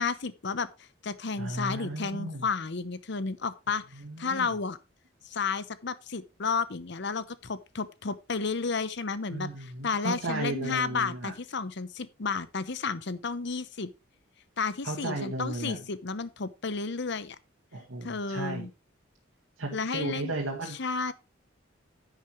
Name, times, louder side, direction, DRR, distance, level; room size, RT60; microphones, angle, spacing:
voice 1, 0.0-4.8 5.2-13.9 14.6-17.4 18.0-18.7 19.7-20.3 20.7-21.1, left 4 dB, 60° left, 0.9 m, -32 dB
voice 2, 1.4-2.5 4.0-4.5 9.3-11.3 14.8-15.8 17.7-18.7 19.6-20.8, right 2 dB, 90° right, 2.0 m, -34 dB
10.5 x 8.2 x 3.2 m
head